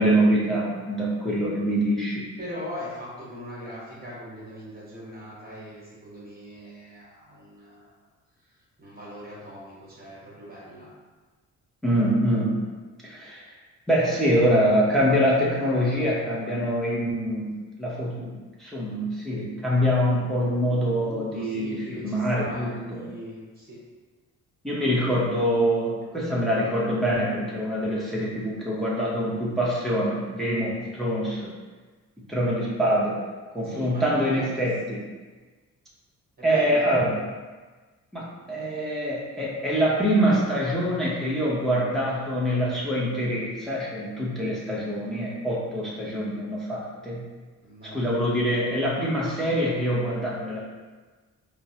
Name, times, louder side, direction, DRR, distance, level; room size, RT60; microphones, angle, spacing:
voice 1, 0.0-2.2 11.8-12.7 13.0-13.5 13.9-23.1 24.6-31.5 32.3-33.2 33.5-35.0 36.4-37.2 38.1-47.3 47.9-50.6, equal, ahead, -6 dB, 0.7 m, -25 dB
voice 2, 2.4-8.0 8.4-10.9 20.7-20.8 21.0-23.8 33.6-34.6 36.4-36.9 47.6-48.1, equal, 30° right, -7 dB, 1.1 m, -40 dB
3.6 x 2.1 x 2.7 m, 1.3 s
cardioid pair, 90°, 30 cm